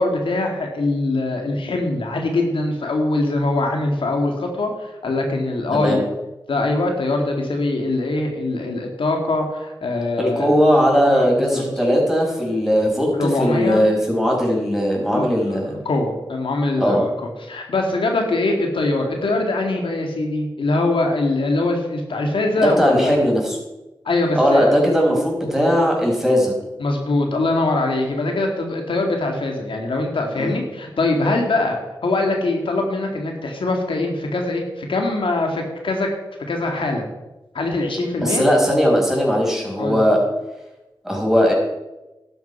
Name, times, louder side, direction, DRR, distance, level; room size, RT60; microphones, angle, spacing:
voice 1, 0.0-6.0 6.5-10.6 11.1-11.6 13.1-13.8 15.1-15.3 15.9-17.1 17.4-23.2 24.1-24.7 26.8-36.1 36.5-37.1 37.5-38.4 39.8-40.0, left 2 dB, 90° left, 2 dB, 2.0 m, -22 dB
voice 2, 5.7-6.0 10.2-15.8 16.8-17.0 22.6-23.6 24.3-26.5 30.3-30.6 38.2-40.2 41.0-41.5, equal, 5° right, -2 dB, 5.1 m, -18 dB
12.0 x 9.3 x 5.5 m, 1.0 s
cardioid pair, 55°, 9 cm